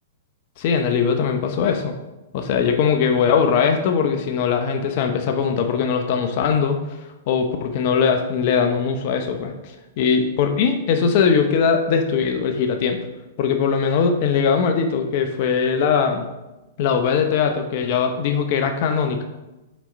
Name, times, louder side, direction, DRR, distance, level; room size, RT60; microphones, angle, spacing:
voice 1, 0.6-1.9 2.3-6.8 7.3-9.5 10.0-13.0 13.4-16.3 16.8-19.2, left 6 dB, 50° left, 5 dB, 0.7 m, -20 dB
6.2 x 4.4 x 4.0 m, 1.0 s
hypercardioid pair, 120°, 0 cm